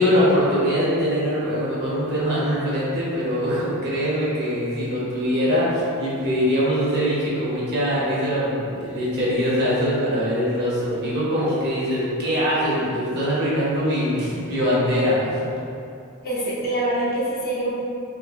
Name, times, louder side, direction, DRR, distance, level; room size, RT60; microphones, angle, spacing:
voice 1, 0.0-15.5, equal, 50° right, -8 dB, 0.8 m, -22 dB
voice 2, 16.2-17.8, right 1 dB, 45° left, -6 dB, 0.6 m, -25 dB
2.7 x 2.7 x 2.4 m, 2.6 s
head